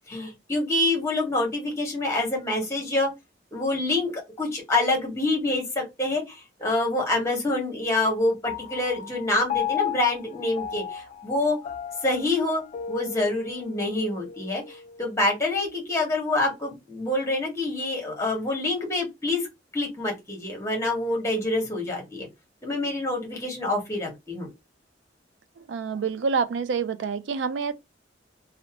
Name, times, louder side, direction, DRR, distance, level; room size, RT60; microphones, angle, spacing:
voice 1, 0.1-3.1 3.5-11.6 12.0-12.6 12.9-19.5 19.7-22.3 22.6-24.5, left 2 dB, 15° left, 1.0 m, -26 dB
Piano, 8.5-15.1, left 9 dB, 40° left, 0.3 m, -35 dB
voice 2, 25.7-27.7, right 5 dB, 70° right, 0.3 m, -27 dB
2.6 x 2.0 x 2.8 m
head